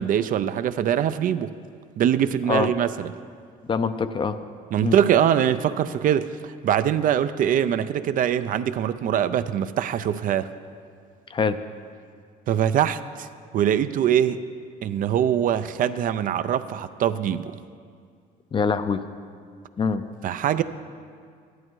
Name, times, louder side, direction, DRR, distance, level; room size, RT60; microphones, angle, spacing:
voice 1, 0.0-1.5 2.0-3.1 4.7-10.5 12.5-13.3 13.5-14.4 14.8-17.6 20.2-20.6, right 9 dB, 55° right, 12 dB, 0.5 m, -23 dB
voice 2, 3.7-4.4 4.8-5.0 11.3-11.6 18.5-19.0 19.8-20.0, left 5 dB, 30° left, 11 dB, 0.5 m, -24 dB
13.0 x 11.0 x 4.6 m, 2.2 s
cardioid pair, 110°, 17 cm